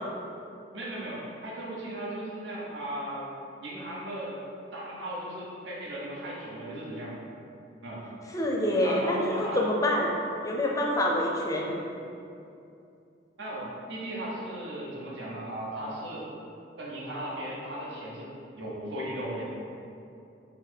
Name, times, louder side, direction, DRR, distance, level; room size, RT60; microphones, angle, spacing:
voice 1, 0.7-3.3 3.6-4.4 4.7-7.1 7.8-8.0 8.8-9.6 13.4-16.3 16.8-18.3 18.6-19.4, right 1 dB, 75° right, -5 dB, 0.8 m, -36 dB
voice 2, 8.3-10.1 10.4-11.7, left 1 dB, 20° left, -1 dB, 0.4 m, -26 dB
4.0 x 2.6 x 4.3 m, 2.7 s
head